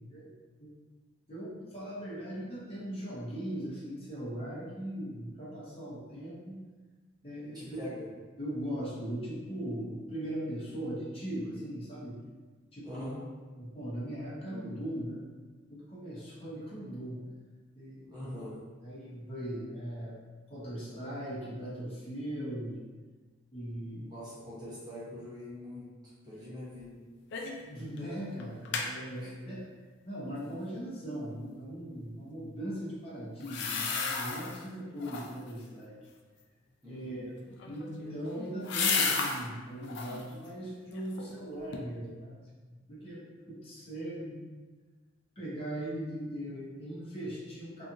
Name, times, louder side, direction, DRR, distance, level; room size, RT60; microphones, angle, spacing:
voice 1, 1.3-6.6 7.2-7.9 8.4-12.2 12.7-13.0 13.5-15.2 15.7-17.2 17.7-18.3 18.8-20.1 20.5-22.8 23.5-24.1 27.4-29.6 30.0-36.0 36.8-42.4 42.7-43.2 43.5-44.4 45.4-47.9, right 1 dB, 30° left, -8 dB, 0.8 m, -39 dB
voice 2, 7.5-8.0 12.8-13.2 18.1-18.6 23.8-25.9 26.2-27.0 29.2-29.3 36.8-37.3, left 1 dB, 20° right, -8 dB, 0.7 m, -43 dB
sound 1, 27.3-27.6 28.0-28.1 28.4-28.9 33.4-34.6 35.0-35.5 37.5-39.4 39.8-40.3 40.7-41.4 41.7-41.8, left 5 dB, 60° left, 0.3 m, -33 dB
2.7 x 2.4 x 2.5 m, 1.3 s
head